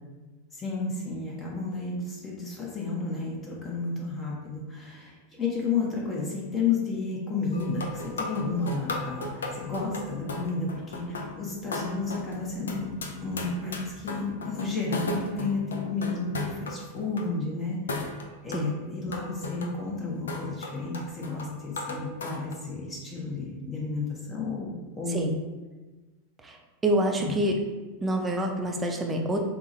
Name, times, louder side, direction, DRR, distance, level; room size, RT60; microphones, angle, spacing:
voice 1, 0.5-12.9 13.2-18.1 18.4-25.3 27.2-27.3, left 4 dB, 25° left, -3 dB, 0.8 m, -32 dB
sound 1, 7.5-17.3 17.9-22.5, left 2 dB, 70° left, 0.4 m, -36 dB
voice 2, 26.8-27.6 28.0-29.4, right 1 dB, 15° right, 2 dB, 0.5 m, -26 dB
3.5 x 2.0 x 3.8 m, 1.2 s
figure-of-eight pair, 90°, 0 cm